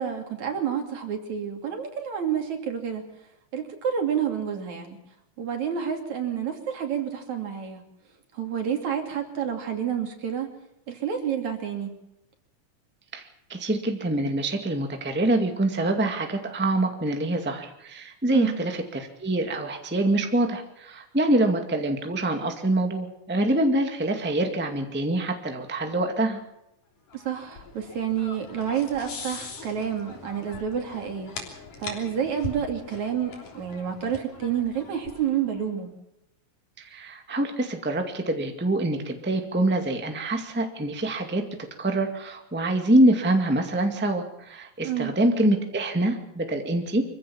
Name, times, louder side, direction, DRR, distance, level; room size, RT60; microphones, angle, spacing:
voice 1, 0.0-3.0 3.5-5.0 5.4-7.8 8.3-10.5 10.9-11.9 18.3-18.6 27.1-31.3 31.8-35.9 44.8-45.1, right 8 dB, 65° right, 4 dB, 4.0 m, -29 dB
voice 2, 13.1-26.4 36.8-41.4 41.8-47.0, right 1 dB, 5° right, 4 dB, 1.5 m, -25 dB
sound 1, 27.1-35.6, left 4 dB, 85° left, 5.0 m, -41 dB
25.5 x 15.0 x 7.1 m, 0.84 s
omnidirectional pair, 3.6 m